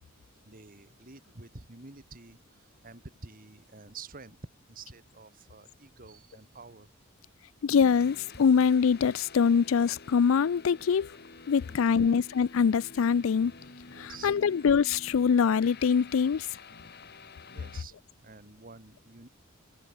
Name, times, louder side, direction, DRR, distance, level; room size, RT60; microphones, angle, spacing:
voice 1, 0.4-4.4 4.7-6.9 11.7-12.1 13.9-14.3 17.5-19.3, right 4 dB, 40° right, 1.8 m, -49 dB
voice 2, 7.6-11.1 11.5-13.5 13.9-16.5, left 6 dB, 70° left, 0.4 m, -24 dB
sound 1, 7.7-17.8, left 3 dB, 50° left, 2.5 m, -49 dB
head